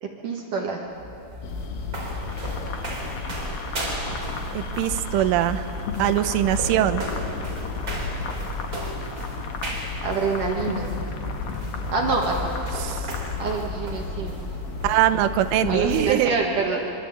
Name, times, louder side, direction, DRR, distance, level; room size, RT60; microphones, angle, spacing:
voice 1, 0.0-0.8 10.0-10.9 11.9-12.5 13.4-14.4 15.7-16.9, right 4 dB, 55° right, 0 dB, 2.5 m, -26 dB
sound 1, 0.9-16.1, equal, 20° right, 4.0 m, -35 dB
sound 2, 1.4-16.1, left 5 dB, 90° left, 4.2 m, -34 dB
sound 3, 2.3-13.5, left 4 dB, 55° left, 2.2 m, -38 dB
voice 2, 4.5-5.7 6.0-7.0 12.8-13.1 14.8-16.4, right 12 dB, 80° right, 8 dB, 3.4 m, -22 dB
24.5 x 24.5 x 8.7 m, 3.0 s
omnidirectional pair, 5.6 m